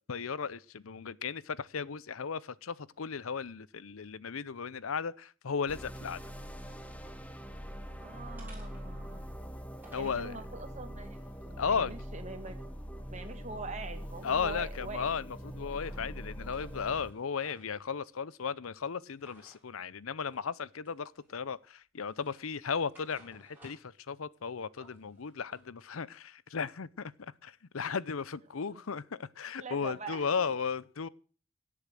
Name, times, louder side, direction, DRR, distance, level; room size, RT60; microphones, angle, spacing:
voice 1, 0.0-6.2 9.9-10.4 11.6-11.9 14.2-31.1, left 6 dB, 80° left, 0.7 m, -35 dB
sound 1, 5.7-17.1, equal, 5° left, 1.1 m, -43 dB
sound 2, 6.6-7.2 7.6-8.0 8.4-10.3 10.9-12.7 13.0-14.9 15.3-16.1 16.4-17.8 19.2-19.6 20.3-20.5 20.8-21.6 22.0-24.0 24.3-25.7, equal, 10° right, 6.9 m, -60 dB
voice 2, 7.9-9.3 10.0-11.2 11.4-12.7 13.1-15.1 29.6-30.5, right 3 dB, 35° right, 2.0 m, -44 dB
17.0 x 8.6 x 6.3 m
head